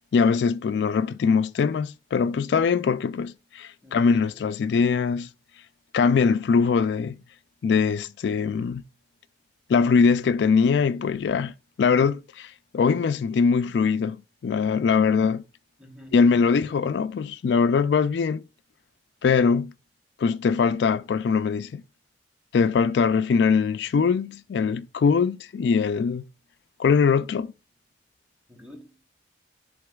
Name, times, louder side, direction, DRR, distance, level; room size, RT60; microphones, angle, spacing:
voice 1, 0.1-5.3 5.9-7.2 7.6-8.8 9.7-14.2 14.4-15.4 16.1-18.4 19.2-19.7 20.2-21.8 22.5-26.2 26.8-27.5, left 5 dB, 75° left, 0.3 m, -22 dB
voice 2, 3.8-4.5 15.8-16.3 28.5-29.0, equal, 5° right, 1.1 m, -47 dB
11.0 x 3.8 x 2.3 m
head